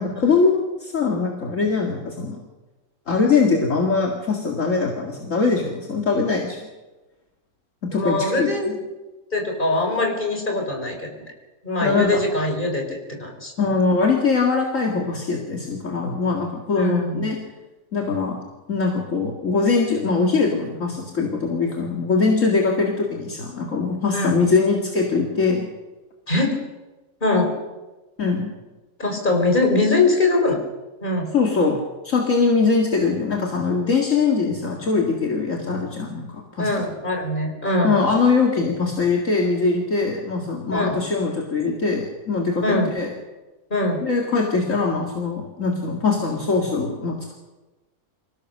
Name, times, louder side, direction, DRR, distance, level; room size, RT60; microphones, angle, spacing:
voice 1, 0.0-2.4 3.1-6.6 7.8-8.8 11.8-12.2 13.6-17.4 17.9-18.4 18.7-25.7 28.2-28.5 31.3-36.7 37.8-43.1 44.0-47.3, left 4 dB, 60° left, 0 dB, 2.5 m, -22 dB
voice 2, 7.9-8.7 9.3-11.1 11.6-13.5 16.7-17.3 24.1-24.4 26.3-26.6 27.2-27.5 29.0-30.6 31.0-31.3 36.6-38.0 40.7-41.0 42.6-43.0 43.7-44.0, left 2 dB, 35° left, 1 dB, 4.8 m, -22 dB
26.0 x 16.5 x 6.6 m, 1.1 s
omnidirectional pair, 1.5 m